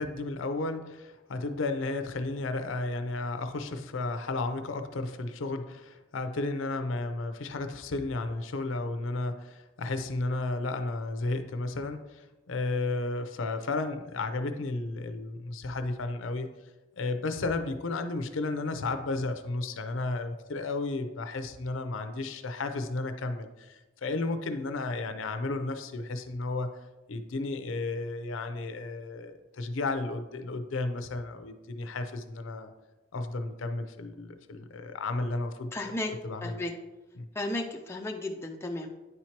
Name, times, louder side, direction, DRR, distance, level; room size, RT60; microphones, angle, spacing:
voice 1, 0.0-16.5 17.0-26.7 27.1-32.7 33.1-35.9 36.2-36.6 37.2-37.3, left 2 dB, 85° left, 8 dB, 0.6 m, -33 dB
voice 2, 35.7-36.1 36.4-36.7 37.4-38.9, left 1 dB, 15° left, 1 dB, 0.4 m, -34 dB
9.4 x 4.5 x 2.9 m, 1.1 s
head